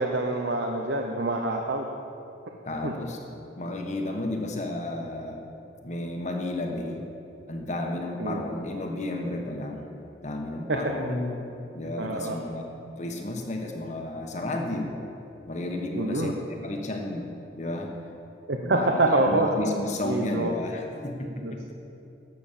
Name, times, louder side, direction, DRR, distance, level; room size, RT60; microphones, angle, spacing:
voice 1, 0.0-1.9 2.8-2.9 8.2-8.4 10.7-10.8 12.0-12.4 15.9-16.3 18.5-19.5 20.0-20.5 21.4-21.5, right 2 dB, 70° right, 2 dB, 0.8 m, -26 dB
voice 2, 2.6-3.2 3.6-5.4 5.8-7.1 7.5-9.9 10.2-11.4 11.7-12.6 13.0-14.9 15.5-16.3 16.6-17.3 17.6-17.9 18.6-21.6, left 2 dB, 40° left, 2 dB, 1.1 m, -32 dB
11.5 x 7.0 x 7.2 m, 2.8 s
head